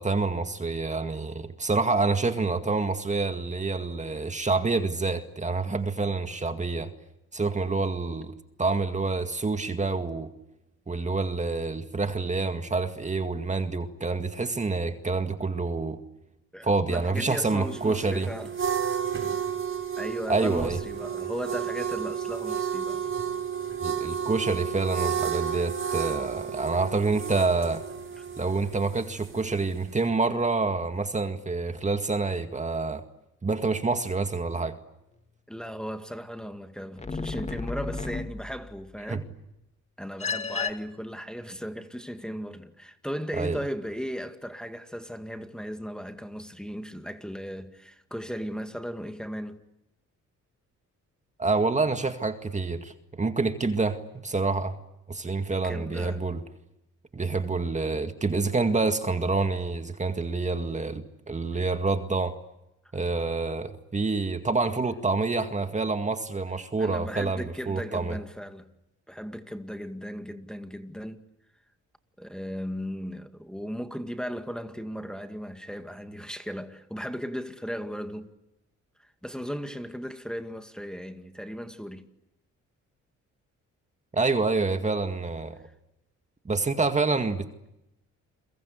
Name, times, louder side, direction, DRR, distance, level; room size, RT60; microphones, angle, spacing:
voice 1, 0.0-6.9 7.3-8.3 8.6-10.3 10.9-16.0 16.6-18.3 20.3-20.8 23.8-27.8 28.4-33.0 33.4-34.8 39.1-39.2 43.4-43.6 51.4-54.8 55.1-56.4 57.1-62.4 62.9-68.2 84.1-85.6 86.5-87.7, right 3 dB, 25° right, 2.0 m, -27 dB
voice 2, 16.5-18.5 20.0-23.1 28.2-28.3 35.5-39.3 40.0-49.6 55.6-56.2 61.5-61.6 66.8-68.7 69.1-71.2 72.2-78.3 79.0-82.1 85.6-85.7, equal, ahead, 2.1 m, -36 dB
sound 1, 17.6-30.1, right 7 dB, 45° right, 6.5 m, -32 dB
sound 2, 37.0-38.8 40.2-40.7, left 4 dB, 20° left, 2.1 m, -32 dB
29.0 x 23.0 x 8.2 m
cardioid pair, 90°, 30 cm